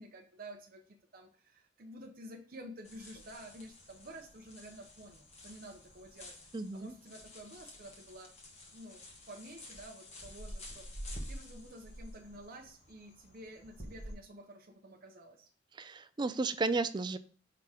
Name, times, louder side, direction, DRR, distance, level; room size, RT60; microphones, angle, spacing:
voice 1, 0.0-6.4 6.7-8.3 8.7-10.9 11.3-15.5, right 1 dB, 50° right, 1 dB, 0.8 m, -51 dB
sound 1, 2.8-14.1, equal, 35° left, 1.4 m, -49 dB
voice 2, 6.5-6.9 15.7-17.2, right 3 dB, 25° right, 11 dB, 0.4 m, -33 dB
5.8 x 3.6 x 4.9 m, 0.43 s
head